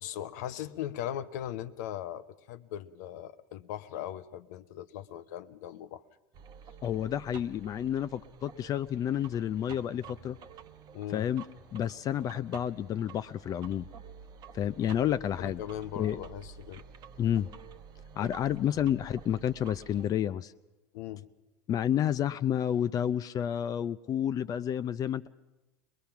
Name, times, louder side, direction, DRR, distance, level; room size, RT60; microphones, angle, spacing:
voice 1, 0.0-6.0 10.9-11.3 15.4-16.8 18.2-18.3 20.9-21.3, left 11 dB, 70° left, 13 dB, 0.8 m, -39 dB
sound 1, 6.3-20.1, right 6 dB, 45° right, 1.1 m, -50 dB
voice 2, 6.8-10.4 11.1-11.4 11.7-13.9 14.5-15.6 16.0-16.2 17.2-17.5 18.2-20.5 21.7-25.3, left 10 dB, 40° left, 13 dB, 0.6 m, -30 dB
22.0 x 20.5 x 5.9 m, 1.0 s
hypercardioid pair, 90°, 10 cm